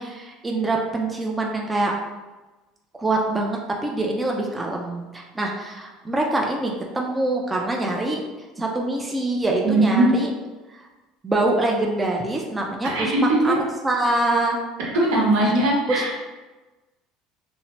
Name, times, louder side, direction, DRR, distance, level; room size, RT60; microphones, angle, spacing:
voice 1, 0.0-1.9 3.0-8.2 8.6-10.3 10.7-10.9 11.2-13.1 13.4-13.5 13.8-14.6 15.4-15.5 15.9-16.2, right 2 dB, 15° right, 0 dB, 0.4 m, -24 dB
voice 2, 9.6-10.1 12.8-13.6 14.8-16.2, right 2 dB, 85° right, -4 dB, 0.9 m, -20 dB
2.6 x 2.0 x 3.1 m, 1.2 s
supercardioid pair, 105°, 0 cm